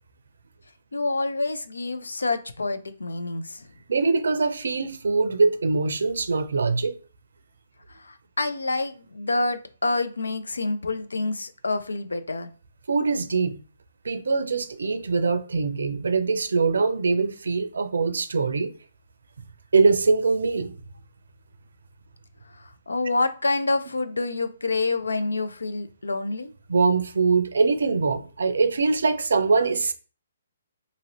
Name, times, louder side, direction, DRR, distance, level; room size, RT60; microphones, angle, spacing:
voice 1, 0.9-3.7 7.9-12.5 22.5-26.5, left 3 dB, 85° left, 0.4 m, -27 dB
voice 2, 3.9-6.9 12.9-13.6 14.0-18.7 19.7-20.7 26.7-29.9, right 4 dB, 75° right, 0.4 m, -23 dB
2.7 x 2.6 x 2.9 m
hypercardioid pair, 140°, 0 cm